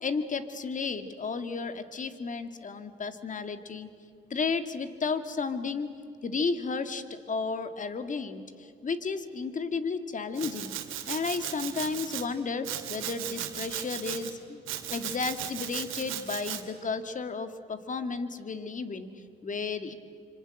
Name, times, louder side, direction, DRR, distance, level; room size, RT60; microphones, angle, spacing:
voice 1, 0.0-3.9 4.3-5.9 6.2-8.4 8.8-10.7 11.1-14.6 14.9-19.1 19.4-19.9, left 4 dB, 40° left, 10 dB, 2.1 m, -33 dB
Domestic sounds home sounds, 10.4-12.2 12.6-14.3 14.7-16.6, right 12 dB, 90° right, 2.5 m, -36 dB
26.0 x 25.0 x 7.8 m, 2.5 s
cardioid pair, 90°, 20 cm